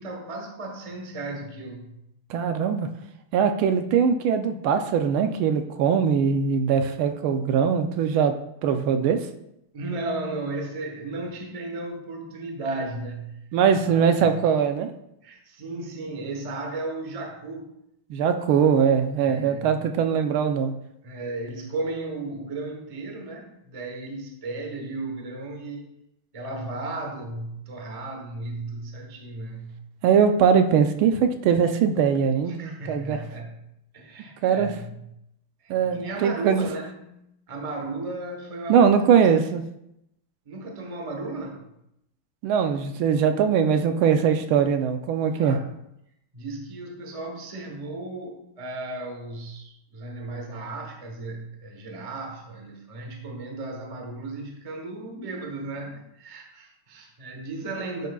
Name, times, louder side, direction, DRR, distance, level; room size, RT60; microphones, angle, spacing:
voice 1, 0.0-2.0 9.7-14.3 15.2-17.7 19.2-19.7 21.0-25.9 26.3-29.8 32.5-33.5 33.9-34.9 35.6-37.2 37.5-38.9 39.3-39.5 40.5-41.6 45.4-45.6 46.3-58.1, right 2 dB, 35° right, 2 dB, 0.5 m, -35 dB
voice 2, 2.3-2.9 3.3-8.3 8.6-9.3 13.5-14.9 18.1-20.7 30.0-33.2 34.4-34.7 35.7-36.7 38.7-39.6 42.4-45.6, right 7 dB, 75° right, 7 dB, 1.4 m, -21 dB
10.0 x 6.5 x 2.3 m, 0.81 s
omnidirectional pair, 2.4 m